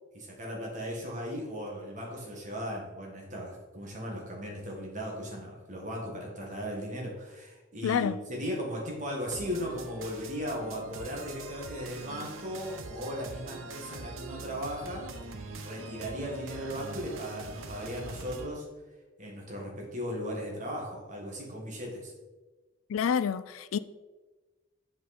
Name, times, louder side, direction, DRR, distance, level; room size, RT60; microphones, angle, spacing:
voice 1, 0.1-15.3 15.6-18.6 19.2-22.1, equal, 35° right, 1.8 m, -37 dB
voice 2, 7.8-8.2 22.9-23.8, left 7 dB, 90° left, 0.4 m, -28 dB
sound 1, 9.3-18.5, right 3 dB, 85° right, 0.8 m, -43 dB
7.9 x 5.2 x 4.2 m
head